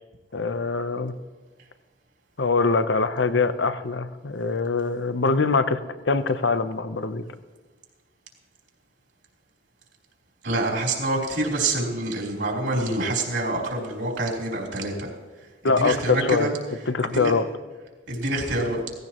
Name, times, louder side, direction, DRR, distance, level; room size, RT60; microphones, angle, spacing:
voice 1, 0.3-1.1 2.4-5.8 6.0-7.2 15.6-16.5 16.9-17.5, left 4 dB, 70° left, 11 dB, 0.8 m, -23 dB
voice 2, 10.4-15.1 15.6-16.5 17.0-17.3 18.1-18.8, right 2 dB, 70° right, -2 dB, 3.7 m, -26 dB
17.0 x 16.0 x 3.0 m, 1.3 s
head